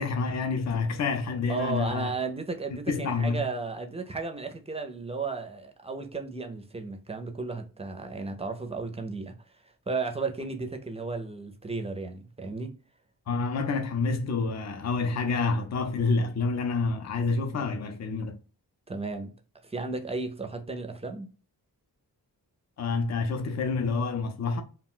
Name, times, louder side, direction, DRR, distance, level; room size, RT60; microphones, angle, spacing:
voice 1, 0.0-2.1 2.9-3.4 13.3-18.4 22.8-24.6, left 4 dB, 45° left, 0.5 m, -28 dB
voice 2, 1.5-9.4 9.6-12.7 18.9-19.3 19.6-21.3, right 3 dB, 15° right, 0.4 m, -34 dB
2.3 x 2.2 x 3.7 m
wide cardioid pair, 100°, 40 cm